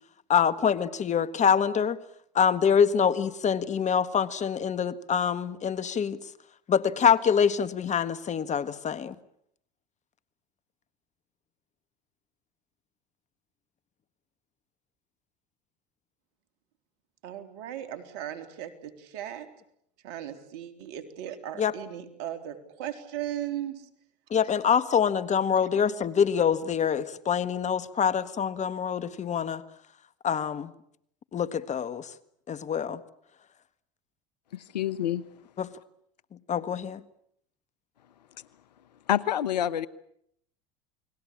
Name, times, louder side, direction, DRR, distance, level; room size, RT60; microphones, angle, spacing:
voice 1, 0.3-2.0 2.3-6.2 6.7-9.1 21.6-21.7 24.3-29.6 30.2-30.7 31.3-32.1 32.5-33.0 35.6-35.7 36.5-37.0, left 7 dB, 35° left, 15 dB, 1.7 m, -25 dB
voice 2, 17.2-19.5 20.0-23.8, right 11 dB, 70° right, 10 dB, 3.5 m, -37 dB
voice 3, 34.5-35.2 39.1-39.9, left 11 dB, 90° left, 19 dB, 1.0 m, -27 dB
29.5 x 21.0 x 8.7 m, 0.71 s
hypercardioid pair, 80°, 21 cm